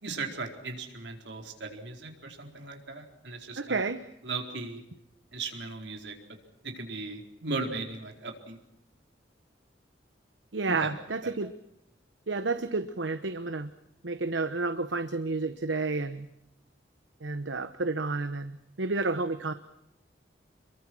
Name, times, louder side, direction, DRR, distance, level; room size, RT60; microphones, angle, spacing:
voice 1, 0.0-3.8 4.2-4.8 5.3-6.2 6.6-8.6 10.7-10.9 11.2-11.4, right 3 dB, 70° right, 3 dB, 4.3 m, -37 dB
voice 2, 3.6-4.0 10.5-11.5 12.3-13.7 14.0-16.3 17.2-19.5, right 3 dB, 85° right, 10 dB, 1.1 m, -30 dB
28.0 x 23.0 x 6.2 m, 0.84 s
head